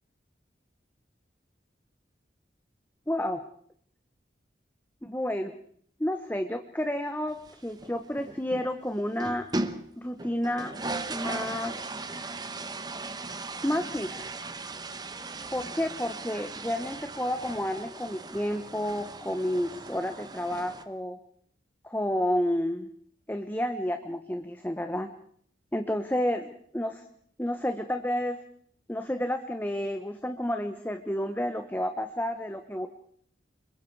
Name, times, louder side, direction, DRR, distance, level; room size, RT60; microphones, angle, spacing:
voice 1, 3.1-3.4 5.0-5.5 6.0-9.5 10.0-10.7 11.1-11.7 13.6-14.3 15.5-21.2 21.8-22.9 23.3-25.1 25.7-27.0 27.4-28.4 28.9-32.9, left 1 dB, 10° left, 7 dB, 1.0 m, -30 dB
sound 1, 7.3-8.7 9.0-9.9 10.2-20.8, right 2 dB, 20° right, 1.1 m, -38 dB
26.5 x 22.5 x 4.7 m, 0.62 s
head